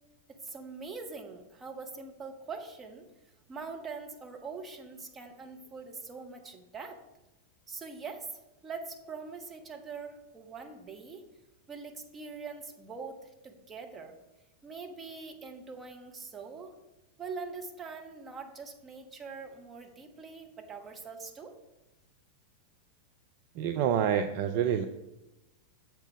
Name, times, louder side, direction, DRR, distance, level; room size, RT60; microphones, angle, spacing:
voice 1, 0.3-3.1 3.5-7.0 7.7-11.3 11.7-14.2 14.6-16.8 17.2-21.6, right 4 dB, 20° right, 4 dB, 0.9 m, -43 dB
voice 2, 23.5-24.9, right 9 dB, 45° right, 8 dB, 0.3 m, -27 dB
7.1 x 4.4 x 5.3 m, 0.98 s
figure-of-eight pair, 90°, 0 cm